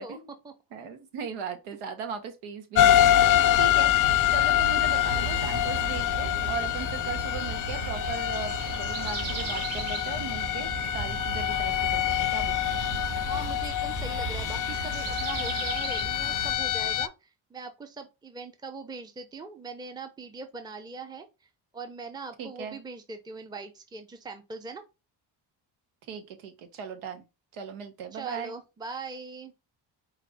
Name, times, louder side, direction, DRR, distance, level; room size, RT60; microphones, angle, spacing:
voice 1, 0.0-0.5 3.4-3.9 13.2-21.3 21.7-24.8 28.1-29.5, right 3 dB, 10° right, 0.6 m, -41 dB
voice 2, 0.7-3.3 3.6-3.9 4.3-12.9 22.4-22.8 26.1-27.2 27.5-28.5, right 6 dB, 90° right, 1.2 m, -38 dB
sound 1, 2.7-17.1, left 12 dB, 45° left, 0.4 m, -26 dB
sound 2, 3.5-16.5, right 3 dB, 55° right, 1.7 m, -37 dB
sound 3, 5.7-16.0, right 4 dB, 75° right, 1.8 m, -41 dB
4.8 x 2.5 x 3.4 m
cardioid pair, 90°, 47 cm